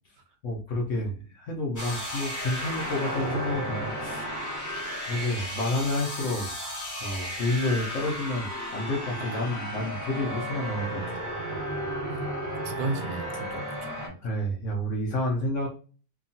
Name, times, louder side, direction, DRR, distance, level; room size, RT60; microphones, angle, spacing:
voice 1, 0.4-4.3 5.1-6.5 7.0-11.3 14.2-15.7, left 1 dB, 65° left, -1 dB, 0.8 m, -30 dB
sound 1, 1.8-14.1, equal, 25° left, 0.4 m, -34 dB
voice 2, 12.6-14.2, right 3 dB, 80° right, 7 dB, 1.1 m, -35 dB
2.8 x 2.3 x 2.6 m, 0.37 s
omnidirectional pair, 1.8 m